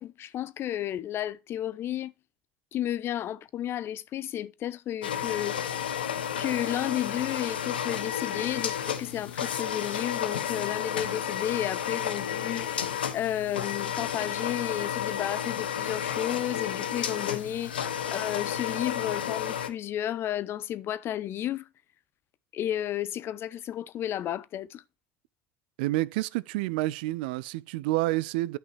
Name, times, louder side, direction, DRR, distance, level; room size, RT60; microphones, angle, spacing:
voice 1, 0.0-2.1 2.7-6.0 6.4-21.7 22.5-24.8, left 11 dB, 50° left, 0.7 m, -32 dB
sound 1, 5.0-19.7, left 9 dB, 85° left, 0.8 m, -32 dB
voice 2, 25.8-28.6, right 18 dB, 70° right, 0.4 m, -29 dB
11.5 x 5.6 x 3.3 m
hypercardioid pair, 65°, 5 cm